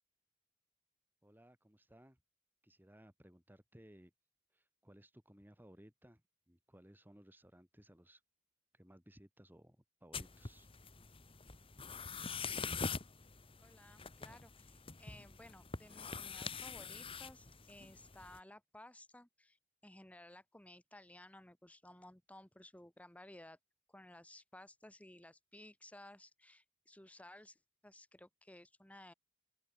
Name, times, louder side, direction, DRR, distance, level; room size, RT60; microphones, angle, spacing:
voice 1, 1.2-2.2 2.6-4.1 4.5-6.2 6.5-8.2 8.7-10.7, equal, 10° right, 2.6 m, -61 dB
sound 1, 10.1-18.4, left 5 dB, 25° left, 1.5 m, -45 dB
voice 2, 13.6-19.6 19.8-23.6 23.9-27.6 27.8-29.1, left 1 dB, 5° left, 1.2 m, -57 dB
open air
head